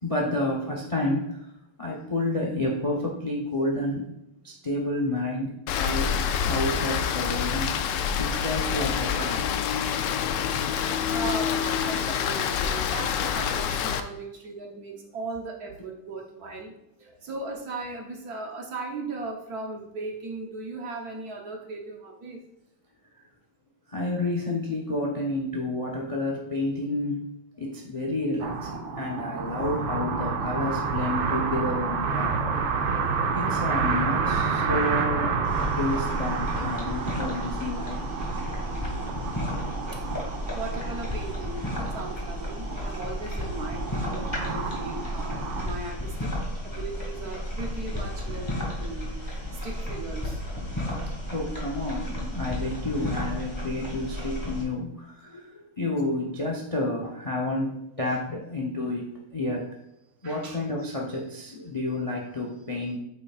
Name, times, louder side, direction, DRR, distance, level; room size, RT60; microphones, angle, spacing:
voice 1, 0.0-1.4 1.8-4.1 4.4-6.1 6.4-7.8 8.2-9.4 23.9-27.3 27.6-32.8 33.3-35.4 35.8-38.0 51.3-59.6 60.2-63.0, left 2 dB, 50° left, -1 dB, 0.3 m, -30 dB
Rain, 5.7-14.0, left 8 dB, 75° left, 1.0 m, -27 dB
voice 2, 11.1-16.7 17.0-22.4 39.9-46.3 46.6-50.4 60.2-60.6, right 3 dB, 55° right, 1 dB, 1.2 m, -37 dB
sound 1, 28.4-45.7, right 5 dB, 70° right, 1.5 m, -29 dB
sound 2, 35.4-54.6, left 1 dB, 10° left, 1.5 m, -33 dB
8.1 x 5.6 x 2.4 m, 0.84 s
omnidirectional pair, 2.4 m